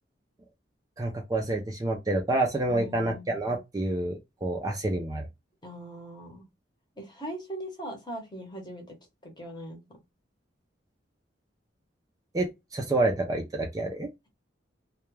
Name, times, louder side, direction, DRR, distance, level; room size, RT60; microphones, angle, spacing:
voice 1, 1.0-5.3 12.3-14.1, right 2 dB, 20° right, 0.4 m, -28 dB
voice 2, 2.7-3.3 5.6-6.4 7.0-9.0 9.2-10.0, right 1 dB, 25° left, 0.9 m, -40 dB
2.2 x 2.2 x 3.0 m
head